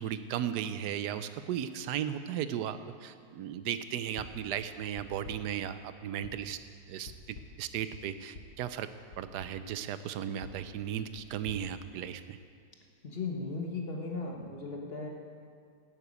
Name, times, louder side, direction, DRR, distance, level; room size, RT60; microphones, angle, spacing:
voice 1, 0.0-6.6 6.9-8.9 9.2-12.4, right 10 dB, 90° right, 12 dB, 1.2 m, -36 dB
sound 1, 4.2-4.5 5.0-5.6 6.2-6.6 7.0-7.7 8.3-8.6 9.1-9.6 10.4-12.5, left 3 dB, 85° left, 1.8 m, -50 dB
voice 2, 13.0-15.1, left 3 dB, 40° left, 1 dB, 1.4 m, -36 dB
11.5 x 8.1 x 8.4 m, 2.2 s
omnidirectional pair, 1.7 m